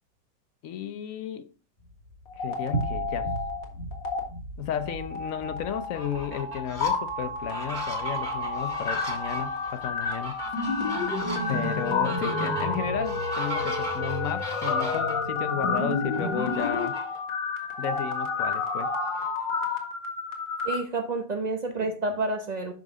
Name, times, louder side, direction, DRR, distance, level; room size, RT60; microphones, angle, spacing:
voice 1, 0.6-1.5 2.4-3.3 4.6-10.4 11.5-17.0 17.8-18.9, left 9 dB, 70° left, 0.8 m, -33 dB
sound 1, 1.8-11.9, right 2 dB, 35° left, 3.0 m, -40 dB
sound 2, 2.3-3.6 3.9-4.2 4.7-20.7, left 3 dB, 90° left, 2.4 m, -30 dB
Fowl, 5.8-6.9 7.4-15.1 16.1-17.2 17.6-17.7 18.1-19.8, equal, 30° right, 3.0 m, -38 dB
voice 2, 20.6-22.7, right 2 dB, 75° right, 0.3 m, -29 dB
12.0 x 5.2 x 3.6 m
omnidirectional pair, 1.9 m